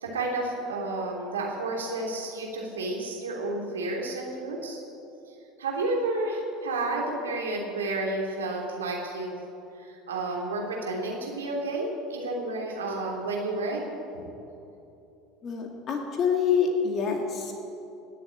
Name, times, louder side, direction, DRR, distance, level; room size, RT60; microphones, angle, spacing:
voice 1, 0.0-4.8 5.6-9.3 9.8-13.9 14.1-14.3, right 2 dB, 80° right, -1 dB, 3.0 m, -31 dB
voice 2, 15.4-17.5, left 6 dB, 40° left, 2 dB, 2.2 m, -26 dB
19.0 x 7.6 x 8.9 m, 2.8 s
figure-of-eight pair, 70°, 0 cm